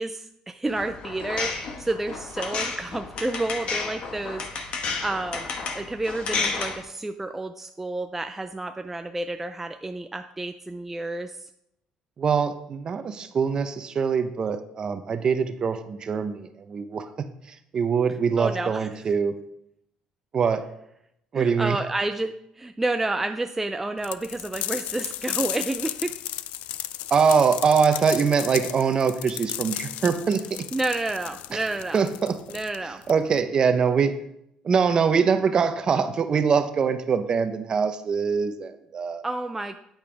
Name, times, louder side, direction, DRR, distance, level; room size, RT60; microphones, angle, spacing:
voice 1, 0.0-11.5 18.4-18.9 21.3-26.1 30.7-32.0 32.5-33.0 39.2-39.7, right 2 dB, 10° right, 7 dB, 0.4 m, -30 dB
sound 1, 0.7-6.8, left 4 dB, 55° left, 1.4 m, -32 dB
voice 2, 12.2-17.1 17.7-19.4 20.3-20.6 21.3-21.8 27.1-30.6 31.5-31.6 31.9-32.4 33.1-34.2 34.6-39.2, right 6 dB, 40° right, 9 dB, 0.9 m, -23 dB
sound 2, 24.0-33.4, left 14 dB, 80° left, 0.4 m, -34 dB
9.0 x 8.6 x 3.5 m, 0.77 s
cardioid pair, 105°, 2 cm